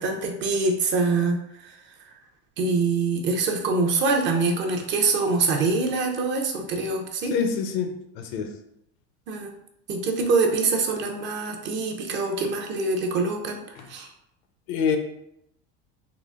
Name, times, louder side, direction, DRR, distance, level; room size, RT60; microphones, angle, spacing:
voice 1, 0.0-1.7 2.6-7.3 9.3-9.5 9.9-13.6 13.9-14.1, right 3 dB, 40° right, 2 dB, 0.6 m, -24 dB
voice 2, 7.3-8.5 13.8-13.9 14.7-15.0, left 6 dB, 75° left, 6 dB, 0.6 m, -26 dB
3.8 x 2.1 x 3.5 m, 0.80 s
supercardioid pair, 135°, 29 cm